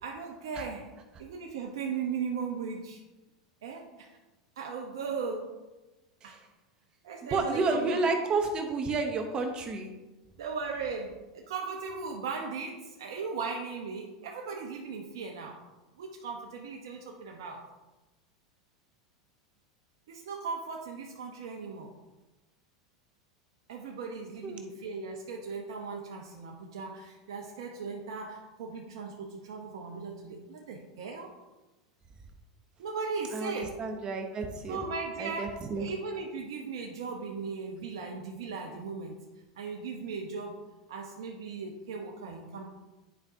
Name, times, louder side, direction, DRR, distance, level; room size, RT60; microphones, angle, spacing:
voice 1, 0.0-0.9 1.2-3.0 3.6-4.1 4.6-5.5 6.2-6.4 7.0-8.0 10.4-15.6 16.0-17.6 20.1-21.9 23.7-31.3 32.8-33.8 34.7-39.2 39.6-40.6 40.9-42.6, right 5 dB, 80° right, 1 dB, 0.9 m, -37 dB
voice 2, 7.3-9.9 24.4-24.6 33.3-34.8 35.2-35.9, right 3 dB, 35° right, 5 dB, 0.9 m, -31 dB
9.9 x 5.1 x 2.7 m, 1.1 s
hypercardioid pair, 105°, 3 cm